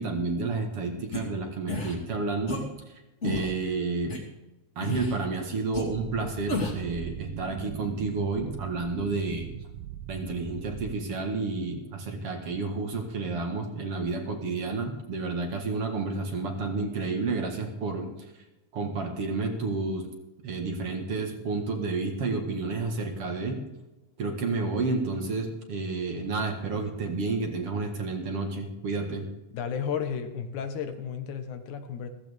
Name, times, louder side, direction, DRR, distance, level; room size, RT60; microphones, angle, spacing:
voice 1, 0.0-2.6 3.2-4.2 4.8-9.5 10.1-18.1 18.7-20.1 20.4-23.6 24.2-29.3, right 3 dB, 55° right, 3 dB, 2.4 m, -30 dB
sound 1, 1.1-1.2 1.7-2.0 2.5-2.6 3.2-3.5 4.1-4.2 4.8-5.2 5.7-5.8 6.5-6.8, left 2 dB, 25° left, 2.4 m, -31 dB
sound 2, 5.9-10.9, right 10 dB, 75° right, 1.6 m, -40 dB
voice 2, 29.5-32.1, left 7 dB, 80° left, 7 dB, 2.7 m, -33 dB
15.0 x 14.5 x 3.5 m, 1.0 s
omnidirectional pair, 3.4 m